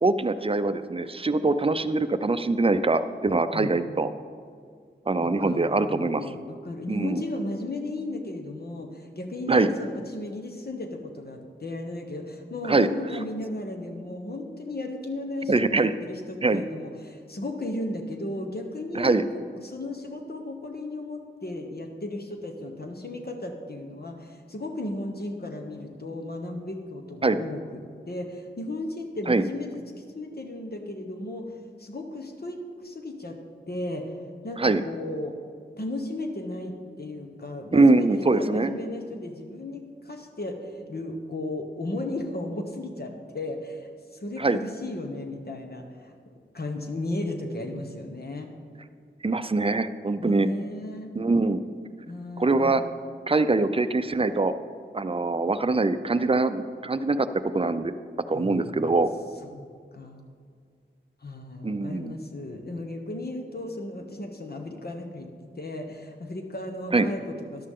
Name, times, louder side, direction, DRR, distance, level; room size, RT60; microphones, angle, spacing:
voice 1, 0.0-4.1 5.1-6.2 6.9-7.2 9.5-9.7 12.7-12.9 15.5-15.9 16.4-16.6 18.9-19.2 27.2-27.4 29.3-29.4 34.6-34.8 37.7-38.7 44.4-44.6 49.2-50.5 51.2-51.7 52.4-52.8 53.3-54.5 54.9-57.3 57.5-57.9 58.3-59.1 61.6-62.2 66.9-67.1, right 3 dB, 30° right, 11 dB, 0.5 m, -23 dB
voice 2, 3.5-3.8 5.2-27.8 28.1-29.7 30.0-33.4 33.7-34.1 34.4-35.3 35.8-46.1 46.5-48.5 50.2-51.1 52.1-52.8 58.3-58.8 59.4-59.7 59.9-60.2 61.2-65.3 65.5-67.7, left 1 dB, 50° left, 3 dB, 1.2 m, -35 dB
13.5 x 11.0 x 3.7 m, 2.1 s
wide cardioid pair, 70°, 20 cm